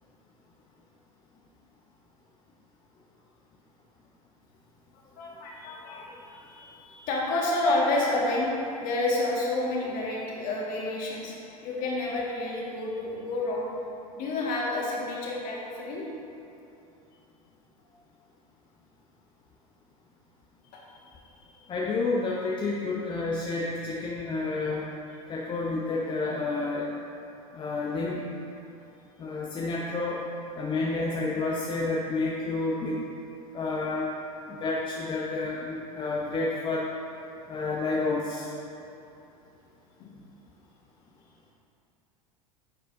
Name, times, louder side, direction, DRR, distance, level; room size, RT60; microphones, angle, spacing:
voice 1, 4.9-11.4 11.6-13.7 14.1-16.1 20.7-21.8 40.0-40.2, left 2 dB, 45° left, -3 dB, 1.7 m, -30 dB
voice 2, 21.7-24.9 25.3-26.9 27.5-28.2 29.2-30.2 30.6-33.0 33.5-34.1 34.5-36.9 37.5-38.5, left 3 dB, 25° left, -3 dB, 0.8 m, -30 dB
9.8 x 6.5 x 2.7 m, 2.8 s
figure-of-eight pair, 80°, 19 cm